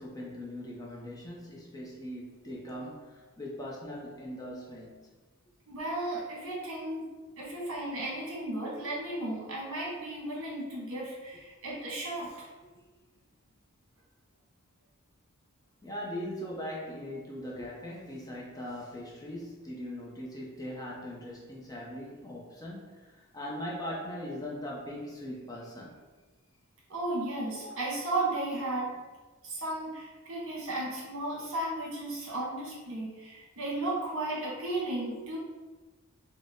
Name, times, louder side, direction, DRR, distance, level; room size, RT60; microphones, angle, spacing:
voice 1, 0.0-5.1 15.8-25.9, equal, 15° left, -4 dB, 0.5 m, -40 dB
voice 2, 5.7-7.1 7.4-12.5 26.9-29.0 29.4-35.4, right 2 dB, 60° right, -5 dB, 1.2 m, -34 dB
4.1 x 2.1 x 3.5 m, 1.3 s
head